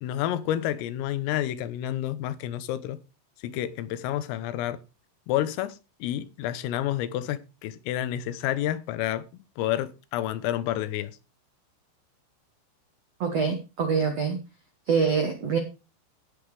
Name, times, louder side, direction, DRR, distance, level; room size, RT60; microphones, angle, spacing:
voice 1, 0.0-3.0 3.4-4.8 5.3-11.1, left 12 dB, 85° left, 3.7 m, -29 dB
voice 2, 13.2-14.4 14.9-15.6, right 5 dB, 75° right, 1.4 m, -25 dB
17.0 x 8.2 x 3.3 m
omnidirectional pair, 5.9 m